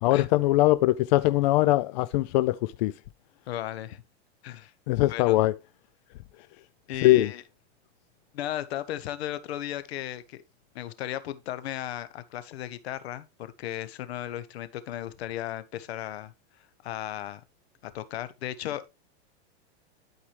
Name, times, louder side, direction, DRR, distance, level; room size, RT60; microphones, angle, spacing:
voice 1, 0.0-2.9 4.9-5.5 7.0-7.3, left 17 dB, 45° left, 0.4 m, -22 dB
voice 2, 3.5-4.0 4.4-4.7 5.1-5.4 6.9-7.4 8.3-10.4 10.7-16.3 16.8-17.4 17.8-18.9, left 12 dB, 70° left, 1.1 m, -35 dB
12.0 x 4.8 x 3.2 m
supercardioid pair, 145°, 32 cm